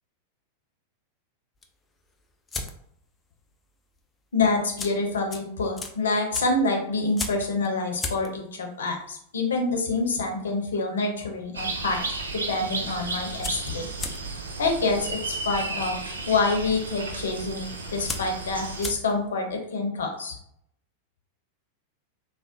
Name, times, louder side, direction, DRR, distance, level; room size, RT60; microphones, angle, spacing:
sound 1, 1.6-3.1 3.4-3.7 3.9-4.0 4.6-11.5 11.8-12.3 12.6-12.7 12.9-19.4, left 3 dB, 15° left, 0.4 m, -38 dB
voice 1, 4.3-13.9 14.6-16.0 16.2-20.4, left 3 dB, 65° left, 2 dB, 0.7 m, -27 dB
sound 2, 11.5-18.9, right 3 dB, 75° right, 0.5 m, -33 dB
3.5 x 2.1 x 2.6 m, 0.70 s
figure-of-eight pair, 90°, 0 cm